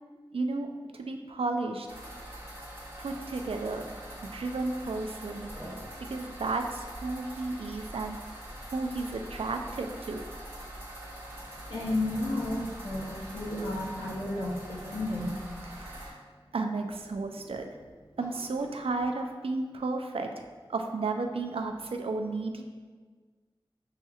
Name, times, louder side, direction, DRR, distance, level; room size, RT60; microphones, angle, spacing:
voice 1, 0.3-1.9 3.0-3.8 4.2-5.5 6.0-8.2 8.7-10.2 15.8-16.2 16.5-17.7 18.2-20.4 20.7-22.6, right 3 dB, 85° right, 4 dB, 0.4 m, -33 dB
sound 1, 1.9-16.1, right 1 dB, 25° right, 1.3 m, -43 dB
voice 2, 11.7-15.4, left 1 dB, 80° left, -7 dB, 0.6 m, -32 dB
7.0 x 2.8 x 2.3 m, 1.5 s
wide cardioid pair, 40°, 9 cm